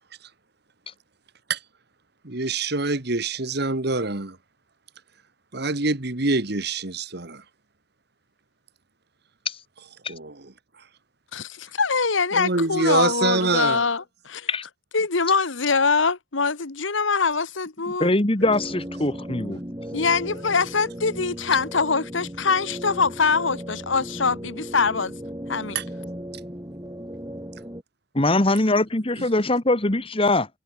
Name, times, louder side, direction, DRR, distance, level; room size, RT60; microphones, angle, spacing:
voice 1, 2.2-4.4 5.5-7.4 10.1-10.5 12.3-13.8 25.7-25.8, right 3 dB, 55° right, 1.8 m, -25 dB
voice 2, 11.3-14.5 14.9-18.1 19.9-25.1 25.5-25.8, left 4 dB, 75° left, 1.4 m, -23 dB
voice 3, 18.0-19.6 28.1-30.5, left 2 dB, 30° left, 1.5 m, -22 dB
sound 1, 18.4-27.8, equal, 15° right, 3.9 m, -36 dB
head